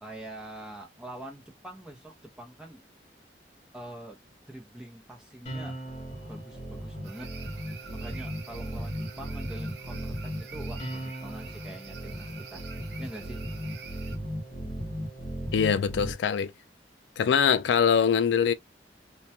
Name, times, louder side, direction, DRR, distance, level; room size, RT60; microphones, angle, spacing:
voice 1, 0.0-2.8 3.7-4.2 4.5-5.8 6.3-7.3 7.9-12.6 13.0-13.4, right 1 dB, 5° right, 0.6 m, -44 dB
sound 1, 5.4-16.1, right 1 dB, 35° left, 0.7 m, -37 dB
sound 2, 7.0-14.2, right 7 dB, 70° right, 0.5 m, -47 dB
voice 2, 15.5-16.5 17.2-18.5, left 7 dB, 90° left, 0.3 m, -23 dB
2.3 x 2.2 x 2.7 m
head